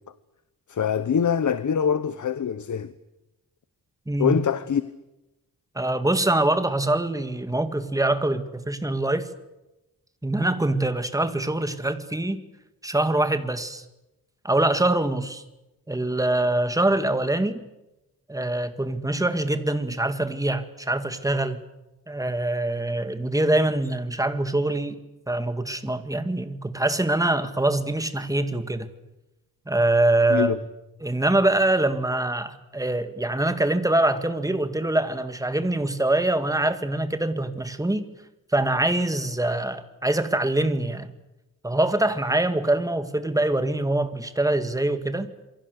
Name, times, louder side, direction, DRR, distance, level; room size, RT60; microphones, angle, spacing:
voice 1, 0.7-2.9 4.2-4.8 30.3-30.6, left 7 dB, 55° left, 1.1 m, -24 dB
voice 2, 4.1-4.4 5.8-9.3 10.2-12.4 12.8-13.8 14.4-15.4 15.9-17.6 18.3-21.6 22.1-25.0 25.3-28.9 29.7-30.5 31.0-38.1 38.5-41.1 41.6-45.3, right 2 dB, 10° right, 2.0 m, -24 dB
28.0 x 23.5 x 6.8 m
wide cardioid pair, 150°, 35 cm